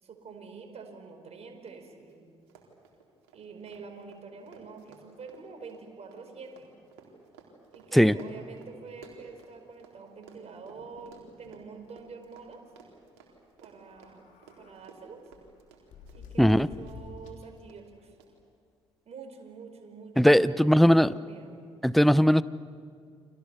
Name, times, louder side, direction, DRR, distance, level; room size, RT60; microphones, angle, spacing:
voice 1, 0.0-2.3 3.3-6.7 7.7-12.6 13.6-14.3 14.6-15.3 16.1-18.1 19.0-21.5, right 5 dB, 50° right, 5 dB, 4.8 m, -46 dB
Run, 1.6-1.7 2.0-2.1 2.4-9.9 10.2-16.6 16.9-17.4 17.7-17.8 18.2-18.3, right 7 dB, 75° right, 3.8 m, -55 dB
sound 1, 10.6-11.6 12.0-12.1 12.4-12.6 13.8-14.8 15.3-17.6, left 5 dB, 65° left, 3.5 m, -50 dB
voice 2, 20.2-21.1 21.8-22.4, equal, ahead, 17 dB, 0.7 m, -19 dB
30.0 x 25.5 x 7.0 m, 2.2 s
hypercardioid pair, 45°, 14 cm